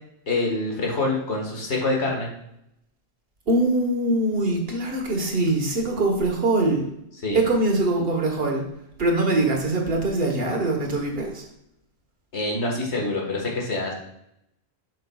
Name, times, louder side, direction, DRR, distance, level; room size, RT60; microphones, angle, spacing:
voice 1, 0.3-2.3 7.2-7.4 12.3-13.9, left 2 dB, 85° left, -1 dB, 1.9 m, -26 dB
voice 2, 3.5-6.9 7.3-8.6 9.0-11.4, right 2 dB, 60° right, 1 dB, 1.5 m, -23 dB
7.8 x 6.5 x 2.3 m, 0.79 s
omnidirectional pair, 1.1 m